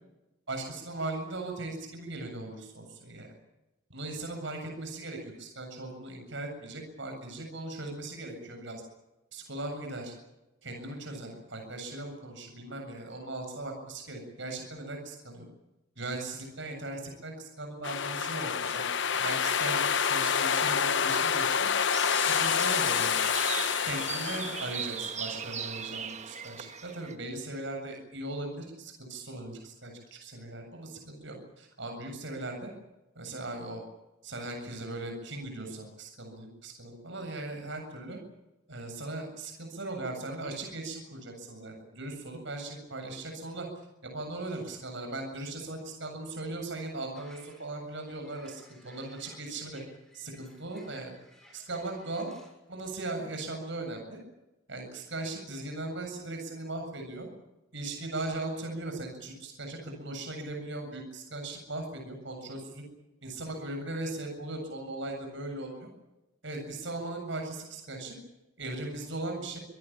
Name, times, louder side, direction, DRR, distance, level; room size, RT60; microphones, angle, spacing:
voice 1, 0.5-3.3 3.9-8.8 9.3-10.1 10.6-15.5 16.0-18.9 19.1-21.7 22.2-23.2 23.8-32.7 33.1-33.8 34.2-38.2 38.7-43.7 44.0-49.8 50.1-51.1 51.5-52.3 52.7-54.2 54.7-57.3 57.7-62.9 63.2-65.9 66.4-68.2 68.6-69.6, right 2 dB, 65° right, 3 dB, 7.6 m, -38 dB
sound 1, 17.8-25.1, left 7 dB, 65° left, 1.1 m, -28 dB
sound 2, 21.9-27.2, right 7 dB, 35° right, 1.4 m, -38 dB
sound 3, 47.1-52.5, equal, ahead, 7.1 m, -58 dB
25.5 x 19.0 x 8.9 m, 0.98 s
head